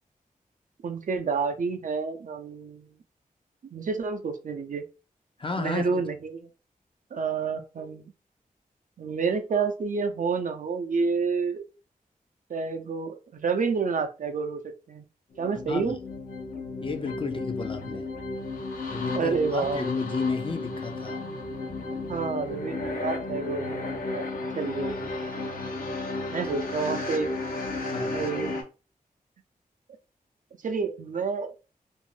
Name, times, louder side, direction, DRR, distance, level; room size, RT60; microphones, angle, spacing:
voice 1, 0.8-2.9 3.7-4.8 5.6-6.5 7.1-8.1 9.0-11.7 12.5-14.6 14.9-15.0 15.4-16.0 19.1-19.9 22.1-24.2 24.5-24.9 26.3-27.3 28.1-28.6 30.6-31.6, right 5 dB, 65° right, 0.5 m, -29 dB
voice 2, 5.4-6.0 15.6-16.0 16.8-18.1 18.9-21.2 27.9-28.3, left 4 dB, 35° left, 0.4 m, -32 dB
sound 1, 15.3-28.6, left 2 dB, 80° left, 0.7 m, -33 dB
2.5 x 2.0 x 3.1 m
wide cardioid pair, 70°, 15 cm